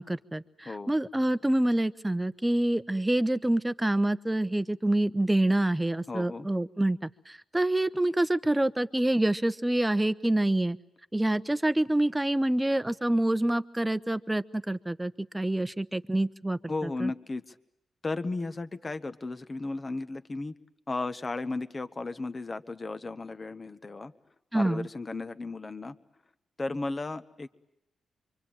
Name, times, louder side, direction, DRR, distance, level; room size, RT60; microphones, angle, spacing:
voice 1, 0.0-10.8 11.1-17.1 24.5-24.9, right 1 dB, 15° right, 13 dB, 1.0 m, -27 dB
voice 2, 0.6-0.9 6.1-6.5 16.7-17.5 18.0-20.5 20.9-24.1 24.5-25.9 26.6-27.5, left 3 dB, 35° left, 10 dB, 1.4 m, -35 dB
25.0 x 24.5 x 8.9 m, 0.85 s
supercardioid pair, 55°, 0 cm